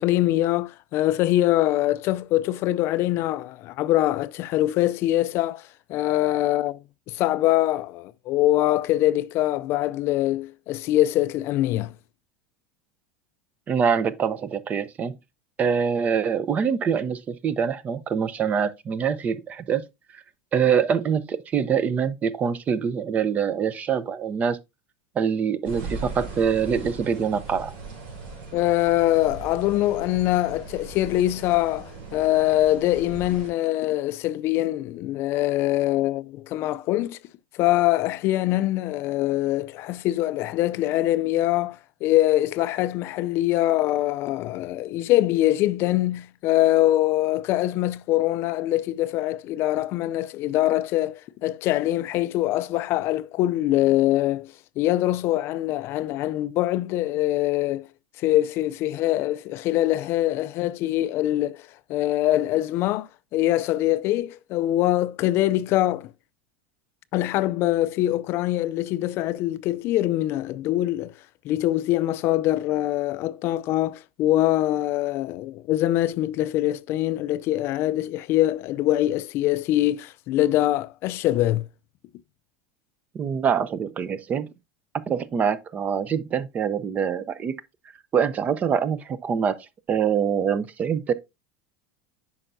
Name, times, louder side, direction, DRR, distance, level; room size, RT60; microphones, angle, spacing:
voice 1, 0.0-6.8 7.1-11.9 28.5-37.2 37.6-57.9 58.2-61.6 61.9-66.1 67.1-71.1 71.4-81.7, left 15 dB, 45° left, 0.4 m, -23 dB
voice 2, 13.7-15.1 15.6-19.8 20.1-20.2 20.5-24.6 25.2-27.7 83.1-84.5 85.1-87.5 88.1-89.6 89.9-91.1, right 7 dB, 25° right, 0.6 m, -24 dB
sound 1, 25.6-33.5, right 3 dB, 75° right, 4.1 m, -39 dB
8.7 x 5.6 x 2.6 m
supercardioid pair, 130°, 6 cm